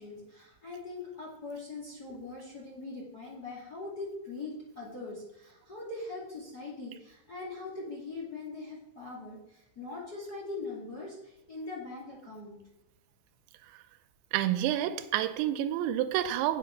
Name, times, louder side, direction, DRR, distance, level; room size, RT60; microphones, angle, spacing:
voice 1, 0.0-12.6, left 3 dB, 30° left, 1.9 m, -41 dB
voice 2, 14.3-16.6, right 12 dB, 85° right, 2.9 m, -29 dB
8.4 x 7.8 x 5.8 m
omnidirectional pair, 5.3 m